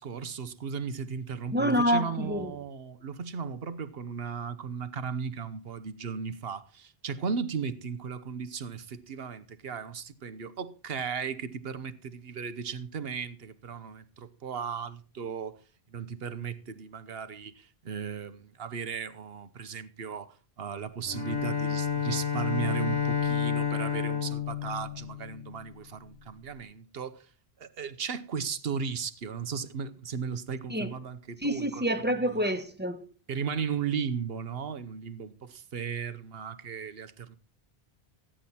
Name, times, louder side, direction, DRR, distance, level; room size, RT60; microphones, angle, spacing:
voice 1, 0.0-15.6 15.9-27.3 27.6-31.8 32.3-32.4 33.3-37.4, right 6 dB, 70° right, 1.1 m, -36 dB
voice 2, 1.5-2.5 30.7-30.9 31.4-33.0, equal, 10° right, 1.3 m, -27 dB
Bowed string instrument, 21.0-25.7, left 7 dB, 20° left, 2.0 m, -30 dB
15.0 x 10.0 x 4.2 m
omnidirectional pair, 1.1 m